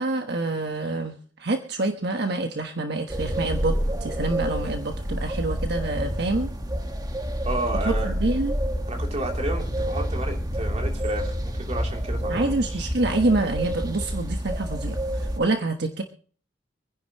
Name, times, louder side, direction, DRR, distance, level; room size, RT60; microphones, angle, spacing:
voice 1, 0.0-6.5 7.8-8.5 12.3-16.0, right 2 dB, 60° right, 4 dB, 1.3 m, -27 dB
sound 1, 3.1-15.4, equal, 20° right, 1.3 m, -28 dB
voice 2, 7.4-8.2 8.9-12.9, right 2 dB, 35° right, 1 dB, 3.2 m, -32 dB
26.0 x 10.0 x 3.1 m, 0.44 s
head